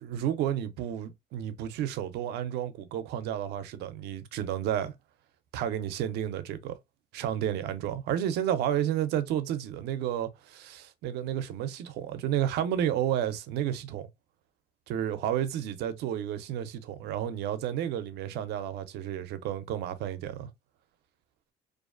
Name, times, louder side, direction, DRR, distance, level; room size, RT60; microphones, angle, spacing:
voice 1, 0.0-4.9 5.5-6.8 7.1-14.1 14.9-20.5, right 10 dB, 80° right, 0.4 m, -31 dB
2.4 x 2.3 x 2.3 m
cardioid pair, 110°, 17 cm